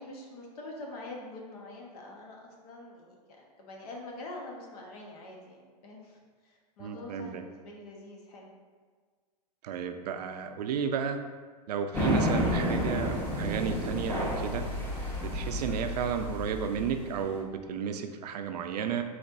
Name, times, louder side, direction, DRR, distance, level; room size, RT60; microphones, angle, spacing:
voice 1, 0.0-3.2 3.6-8.5, left 2 dB, 65° left, -1 dB, 1.0 m, -45 dB
voice 2, 6.8-7.4 9.6-11.2 11.7-14.6 15.2-19.0, right 7 dB, 75° right, 7 dB, 0.5 m, -32 dB
sound 1, 11.9-17.3, left 1 dB, 10° left, 0.9 m, -31 dB
4.3 x 4.1 x 2.6 m, 1.5 s
hypercardioid pair, 125°, 21 cm